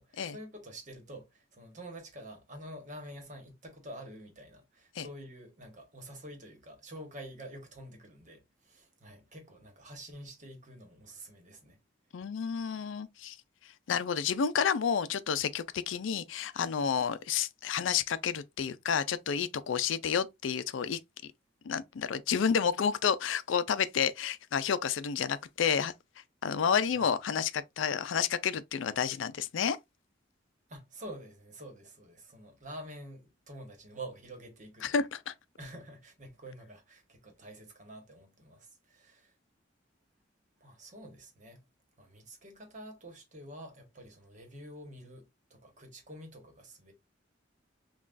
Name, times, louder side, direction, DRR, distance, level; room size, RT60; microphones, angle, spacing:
voice 1, 0.0-11.8 26.9-27.1 30.7-35.0 35.6-39.3 40.6-41.6 42.0-46.9, right 1 dB, 40° right, 1.2 m, -48 dB
voice 2, 12.1-13.4 13.9-21.3 21.6-25.9 26.4-29.8 34.8-35.3, left 7 dB, 75° left, 0.4 m, -30 dB
5.8 x 2.3 x 2.5 m
head